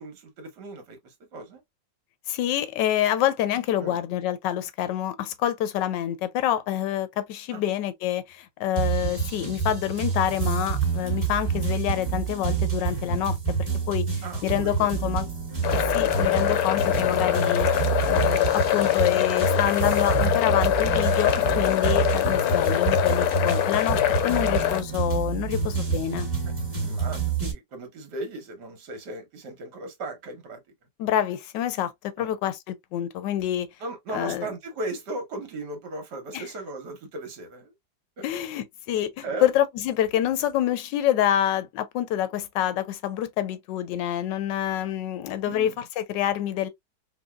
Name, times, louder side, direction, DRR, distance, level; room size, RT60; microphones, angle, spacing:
voice 1, 0.0-1.6 3.7-4.0 7.5-7.6 14.2-14.9 26.8-30.6 32.2-32.3 33.8-37.7 38.2-38.3 39.2-39.5 45.5-45.8, right 2 dB, 70° right, 1.7 m, -37 dB
voice 2, 2.3-14.1 14.4-15.3 15.7-17.7 18.0-26.3 31.0-33.7 34.1-34.5 36.3-36.4 38.2-46.7, left 11 dB, 90° left, 1.3 m, -27 dB
sound 1, 8.8-27.5, right 6 dB, 15° right, 1.4 m, -28 dB
sound 2, 15.6-24.8, left 12 dB, 70° left, 1.0 m, -24 dB
4.7 x 2.3 x 2.3 m
omnidirectional pair, 1.9 m